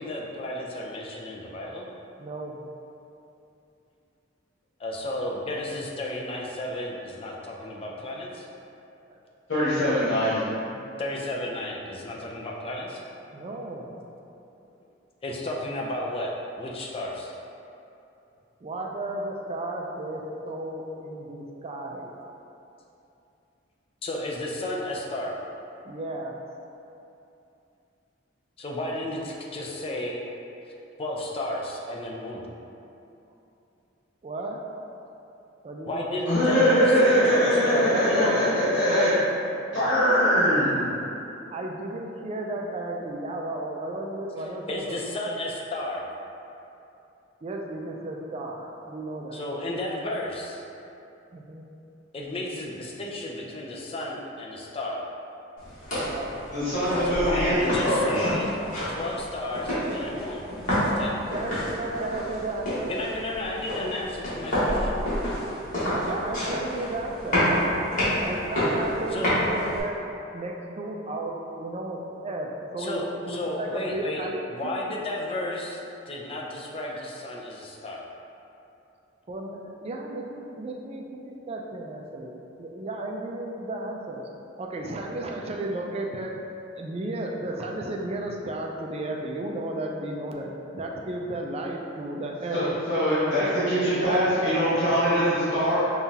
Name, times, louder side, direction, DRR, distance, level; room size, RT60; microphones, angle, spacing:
voice 1, 0.0-1.9 4.8-8.4 11.0-13.0 15.2-16.3 16.6-17.3 24.0-25.3 28.6-30.2 31.0-32.4 35.9-38.7 44.7-46.1 49.3-50.6 52.1-55.0 57.0-58.5 58.9-61.1 62.9-65.0 69.1-69.3 72.8-75.8 76.1-78.0, left 1 dB, 30° left, -2 dB, 0.4 m, -33 dB
voice 2, 2.2-2.6 9.1-9.2 10.6-11.0 13.3-14.0 18.6-22.2 25.8-26.4 34.2-34.7 35.6-36.2 37.9-38.4 38.9-39.2 40.0-40.6 41.5-45.3 47.4-49.4 51.3-51.7 56.0-56.4 61.3-62.9 65.9-67.8 68.2-73.0 73.3-74.9 79.3-84.3 84.6-86.3 86.7-92.6 93.2-93.6 94.0-94.6 94.9-95.0, right 2 dB, 30° right, 0 dB, 0.4 m, -34 dB
voice 3, 9.5-10.4 36.3-39.1 39.7-40.8 56.5-58.1 92.5-95.8, equal, 70° left, -13 dB, 1.3 m, -22 dB
sound 1, 55.6-69.8, equal, 45° left, 1.4 m, -29 dB
5.4 x 2.4 x 2.7 m, 2.8 s
head